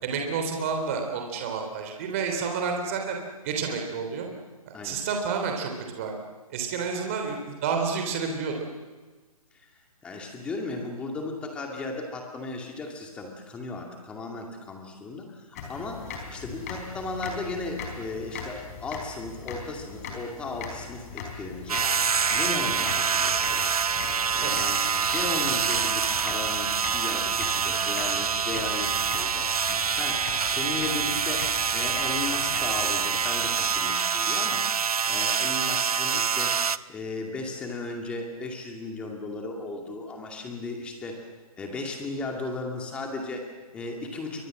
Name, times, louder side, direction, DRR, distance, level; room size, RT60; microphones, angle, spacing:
voice 1, 0.0-3.2 3.4-4.3 4.8-6.2 6.5-8.6 24.4-24.6, right 5 dB, 20° right, 3 dB, 3.4 m, -30 dB
voice 2, 10.0-21.9 22.3-23.6 24.3-41.3 41.6-44.5, left 3 dB, 5° left, 2 dB, 2.3 m, -36 dB
sound 1, 15.5-34.3, left 4 dB, 25° left, 4.2 m, -40 dB
sound 2, 21.7-36.8, right 6 dB, 75° right, 0.9 m, -26 dB
30.0 x 24.0 x 7.7 m, 1.3 s
hypercardioid pair, 170°, 19 cm